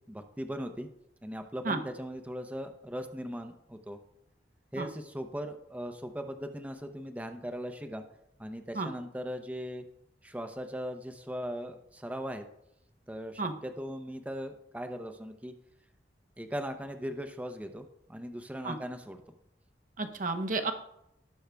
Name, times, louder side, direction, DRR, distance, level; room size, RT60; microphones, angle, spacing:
voice 1, 0.1-0.9 1.2-4.0 4.7-8.0 8.4-9.8 10.2-12.4 13.1-15.5 16.4-19.2, equal, 10° right, 7 dB, 0.7 m, -39 dB
voice 2, 20.0-20.7, right 3 dB, 50° right, 6 dB, 0.9 m, -31 dB
18.5 x 6.3 x 2.3 m, 0.79 s
head